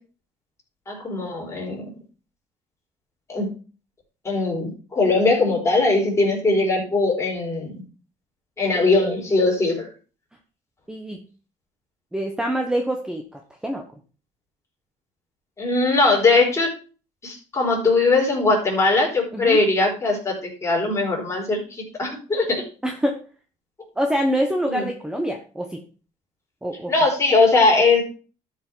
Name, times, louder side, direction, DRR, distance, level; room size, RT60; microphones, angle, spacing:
voice 1, 0.9-1.9 3.3-3.5 4.2-7.8 8.6-9.9 15.6-16.7 17.2-22.6 24.7-24.9 26.9-28.0, left 3 dB, 20° left, -1 dB, 4.2 m, -20 dB
voice 2, 10.9-11.2 12.1-13.8 19.3-19.6 22.8-23.2 24.0-25.8 26.6-26.9, equal, 5° right, 3 dB, 1.1 m, -25 dB
12.0 x 5.8 x 4.6 m, 0.37 s
cardioid pair, 130°, 14 cm